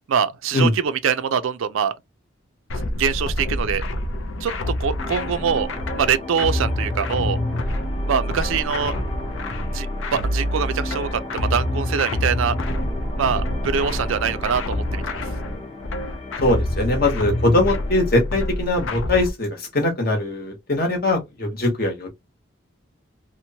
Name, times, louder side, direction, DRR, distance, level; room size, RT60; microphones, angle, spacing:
voice 1, 0.1-1.9 3.0-3.8 4.4-5.7 5.9-7.4 8.1-8.9 9.7-12.6 13.2-15.0, right 7 dB, 80° right, 0.4 m, -24 dB
sound 1, 2.7-19.3, left 1 dB, 75° left, 0.5 m, -27 dB
sound 2, 5.0-18.3, left 1 dB, 30° left, 0.8 m, -35 dB
voice 2, 16.4-22.1, left 2 dB, 45° left, 1.0 m, -21 dB
2.9 x 2.1 x 2.7 m
head